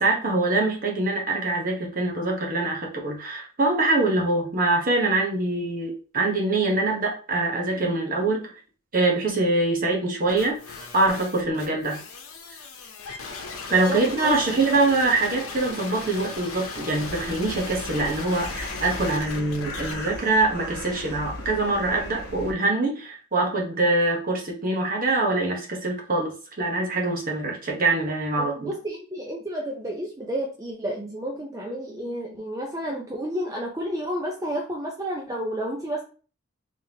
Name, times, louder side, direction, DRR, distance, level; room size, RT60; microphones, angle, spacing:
voice 1, 0.0-8.5 8.9-10.6 10.9-12.0 13.1-13.2 13.7-28.7, right 2 dB, 40° right, 0 dB, 1.0 m, -24 dB
sound 1, 10.3-19.9, left 4 dB, 90° left, 0.9 m, -37 dB
voice 2, 13.9-14.3 28.4-36.0, equal, 15° right, -1 dB, 0.6 m, -31 dB
sound 2, 17.0-22.5, left 1 dB, 50° left, 1.2 m, -37 dB
3.4 x 3.4 x 2.8 m, 0.37 s
head